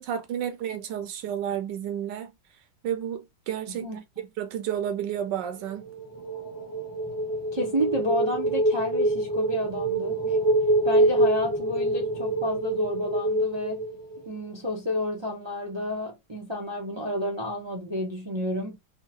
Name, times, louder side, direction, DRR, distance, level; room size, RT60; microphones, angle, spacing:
voice 1, 0.0-2.3 2.8-3.8 4.4-5.8, right 9 dB, 75° right, 1.3 m, -31 dB
voice 2, 3.7-4.0 7.5-10.4 10.8-13.8 14.3-18.8, left 1 dB, 45° right, 0.3 m, -30 dB
sound 1, 5.6-14.5, right 1 dB, 20° left, 0.5 m, -26 dB
3.6 x 2.2 x 2.8 m
omnidirectional pair, 2.0 m